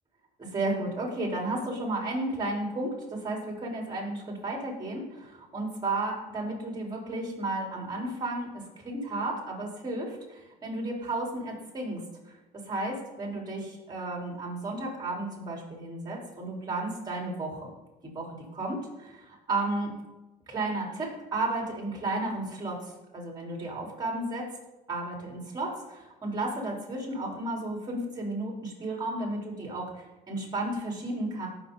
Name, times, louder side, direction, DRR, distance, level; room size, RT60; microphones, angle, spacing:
voice 1, 0.4-12.0 12.3-12.4 12.7-17.7 18.0-19.9 20.5-24.4 24.9-31.5, right 2 dB, 25° right, -1 dB, 4.5 m, -33 dB
18.0 x 7.0 x 4.1 m, 1.1 s
cardioid pair, 110°, 17 cm